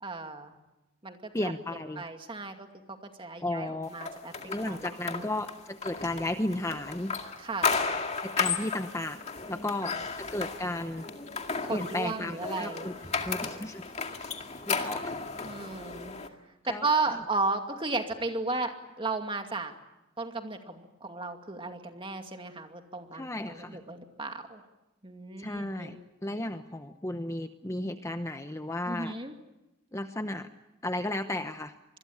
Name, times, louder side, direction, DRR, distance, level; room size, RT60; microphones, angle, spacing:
voice 1, 0.0-0.5 1.0-5.3 7.4-7.8 9.5-10.0 11.6-13.1 14.7-14.9 15.4-16.2 16.6-19.7 20.2-24.6 25.0-25.9 28.9-29.3, right 3 dB, 25° right, 5 dB, 2.3 m, -35 dB
voice 2, 1.3-2.0 3.4-3.9 4.4-7.1 8.2-9.2 9.5-11.0 11.7-12.9 13.2-13.8 14.7-15.0 16.7-16.9 17.1-17.2 23.1-23.8 25.4-26.0 26.2-29.2 29.9-30.5 30.8-31.7, left 1 dB, 15° left, 8 dB, 0.9 m, -34 dB
sound 1, 4.0-16.3, left 5 dB, 35° left, 2.1 m, -34 dB
26.0 x 21.0 x 8.7 m, 0.97 s
head